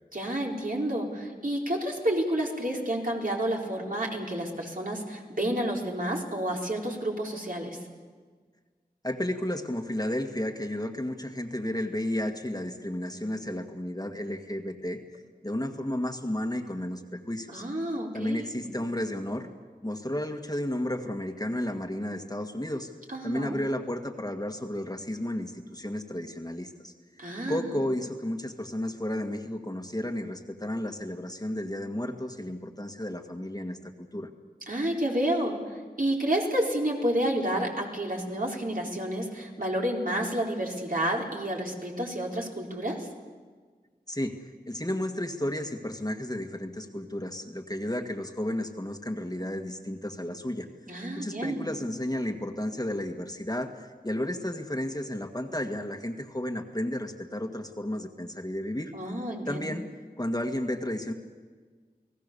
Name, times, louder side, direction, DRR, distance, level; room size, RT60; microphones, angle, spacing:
voice 1, 0.1-7.8 17.5-18.5 23.1-23.5 27.2-27.8 34.7-43.1 50.9-51.6 58.9-59.7, right 1 dB, 60° right, -2 dB, 4.3 m, -30 dB
voice 2, 9.0-15.0 15.4-17.6 18.1-19.5 19.8-22.9 23.2-26.9 27.5-34.3 44.1-50.7 51.2-58.9 59.5-59.9 60.2-61.1, left 1 dB, 25° left, 4 dB, 1.9 m, -32 dB
30.0 x 19.0 x 6.9 m, 1.5 s
wide cardioid pair, 40°, 17 cm